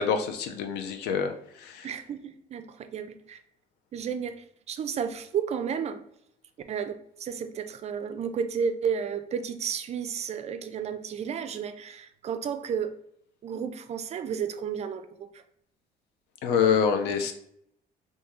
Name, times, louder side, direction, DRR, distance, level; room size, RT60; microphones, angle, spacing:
voice 1, 0.0-1.3 1.6-1.9 16.4-17.3, left 6 dB, 85° left, 7 dB, 0.5 m, -26 dB
voice 2, 1.8-3.4 3.9-6.0 6.7-13.0 13.4-15.4 17.1-17.2, right 7 dB, 40° right, 10 dB, 0.4 m, -32 dB
3.0 x 2.7 x 3.5 m, 0.69 s
cardioid pair, 110°, 17 cm